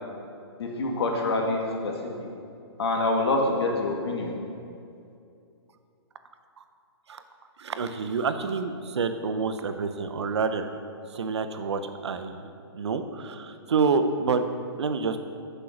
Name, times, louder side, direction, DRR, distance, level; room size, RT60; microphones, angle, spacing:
voice 1, 0.6-1.9 2.2-2.3 2.8-4.3, left 2 dB, 65° left, 0 dB, 2.1 m, -26 dB
voice 2, 7.6-10.7 11.1-14.5 14.8-15.2, right 5 dB, 80° right, 9 dB, 0.9 m, -28 dB
9.9 x 6.8 x 5.9 m, 2.5 s
hypercardioid pair, 150°, 14 cm